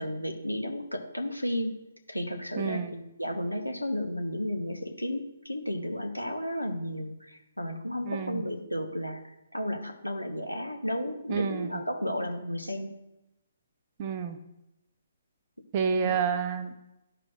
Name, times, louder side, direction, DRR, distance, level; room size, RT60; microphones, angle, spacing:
voice 1, 0.0-1.8 2.1-12.9 16.0-16.1, equal, 90° left, 4 dB, 0.9 m, -33 dB
voice 2, 2.6-2.9 8.0-8.4 11.3-11.8 14.0-14.4 15.7-16.7, right 6 dB, 30° right, 7 dB, 0.6 m, -29 dB
13.5 x 5.0 x 2.5 m, 0.91 s
figure-of-eight pair, 130°, 0 cm